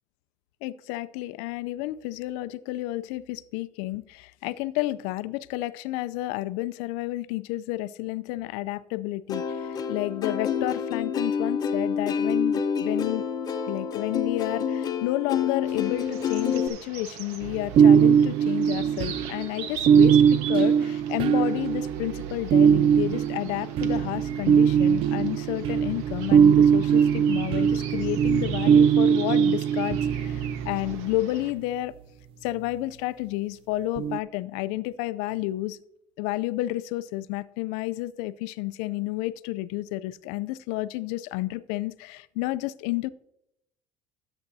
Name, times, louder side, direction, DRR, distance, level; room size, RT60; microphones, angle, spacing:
voice 1, 0.6-13.2 13.7-31.9 32.4-35.8 36.2-43.1, left 17 dB, 80° left, 16 dB, 0.4 m, -31 dB
Plucked string instrument, 9.3-16.7, left 6 dB, 35° left, 0.9 m, -28 dB
sound 1, 15.6-31.5, right 8 dB, 75° right, 1.3 m, -42 dB
sound 2, 17.4-31.2 34.0-34.2, right 8 dB, 55° right, 0.4 m, -21 dB
13.0 x 7.9 x 2.7 m, 0.78 s
supercardioid pair, 110°, 11 cm